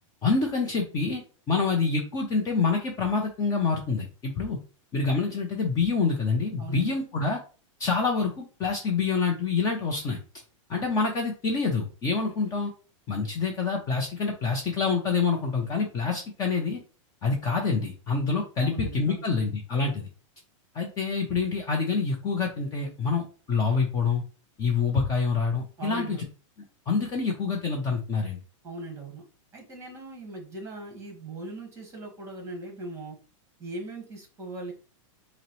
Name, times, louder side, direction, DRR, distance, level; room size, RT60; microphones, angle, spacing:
voice 1, 0.2-1.2 1.5-4.6 4.9-7.4 7.8-10.2 10.7-12.7 13.1-16.8 17.2-20.1 20.7-24.2 24.6-26.2 26.9-28.4, left 4 dB, 20° left, 1 dB, 0.5 m, -26 dB
voice 2, 6.6-6.9 18.6-19.2 25.8-26.2 28.6-29.2 29.5-33.2 33.6-34.7, right 2 dB, 15° right, 2 dB, 1.2 m, -39 dB
5.6 x 2.0 x 3.0 m, 0.37 s
supercardioid pair, 155°, 17 cm